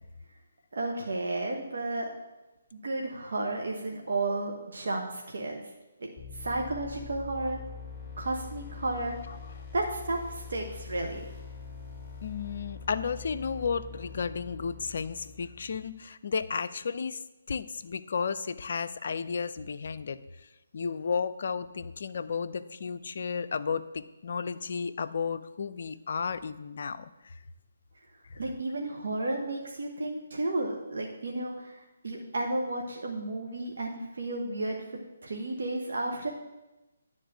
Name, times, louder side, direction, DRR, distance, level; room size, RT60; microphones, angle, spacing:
voice 1, 0.7-2.2 2.7-5.7 6.0-6.1 6.3-7.6 8.2-9.2 9.7-11.2 28.3-34.8 35.2-36.3, right 2 dB, 60° right, -1 dB, 1.2 m, -32 dB
sound 1, 6.2-16.0, left 5 dB, 15° left, 1.4 m, -44 dB
voice 2, 12.2-17.2 17.5-27.3 28.3-28.4, left 5 dB, 50° left, 11 dB, 0.5 m, -33 dB
10.0 x 4.0 x 7.4 m, 1.0 s
figure-of-eight pair, 140°, 0 cm